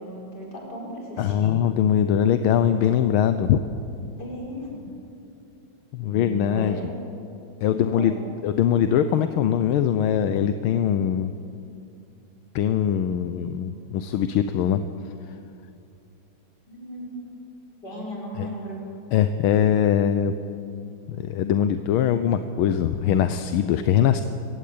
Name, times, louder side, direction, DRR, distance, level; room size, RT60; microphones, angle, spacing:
voice 1, 0.0-1.6 4.2-4.8 6.0-6.9 7.6-8.1 13.7-13.8 16.7-17.2 17.8-18.8, equal, 50° left, -2 dB, 5.8 m, -36 dB
voice 2, 1.2-3.6 5.9-6.8 7.6-8.1 8.4-11.3 12.5-14.9 18.4-18.5 19.1-20.3 21.1-24.2, left 9 dB, 80° left, 10 dB, 1.6 m, -22 dB
23.5 x 16.5 x 8.6 m, 2.5 s
omnidirectional pair, 2.3 m